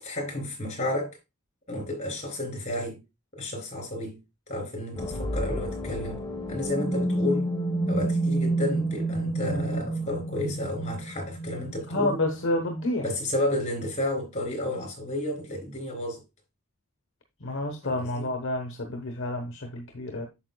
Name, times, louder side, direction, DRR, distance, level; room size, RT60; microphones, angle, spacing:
voice 1, 0.0-1.1 1.7-3.0 3.3-4.2 4.5-6.2 6.5-7.5 7.9-12.2 13.0-16.2 17.8-18.3, left 1 dB, 35° left, 3.8 m, -31 dB
sound 1, 5.0-12.7, right 1 dB, 20° left, 1.2 m, -29 dB
voice 2, 11.9-13.1 17.4-20.3, left 1 dB, 60° left, 1.1 m, -29 dB
8.6 x 7.5 x 2.3 m
head